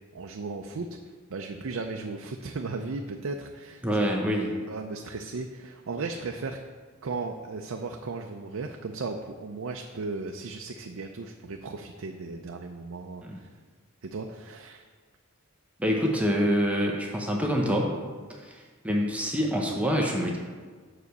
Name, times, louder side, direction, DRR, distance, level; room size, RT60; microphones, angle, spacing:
voice 1, 0.1-1.0 1.3-3.8 4.7-6.6 7.0-13.5 14.0-14.8, right 3 dB, 70° right, 3 dB, 0.5 m, -36 dB
voice 2, 3.8-4.5 13.2-13.4 15.8-17.9 18.3-20.4, equal, 5° right, -1 dB, 0.7 m, -26 dB
6.2 x 4.9 x 6.7 m, 1.5 s
head